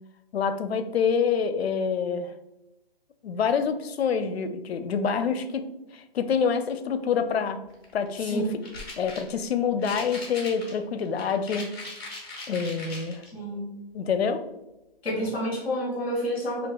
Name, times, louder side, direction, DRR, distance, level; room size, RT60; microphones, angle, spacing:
voice 1, 0.3-2.3 3.2-5.6 5.9-7.6 7.9-8.5 9.0-11.7 12.5-13.2 13.9-14.4, left 6 dB, 85° left, 9 dB, 0.5 m, -26 dB
sound 1, 7.7-8.1 8.6-9.4 9.8-13.3, left 2 dB, 25° left, 0.9 m, -40 dB
voice 2, 13.3-13.7 15.0-16.7, equal, ahead, -22 dB, 0.6 m, -29 dB
5.3 x 2.3 x 2.2 m, 0.95 s
hypercardioid pair, 175°, 30 cm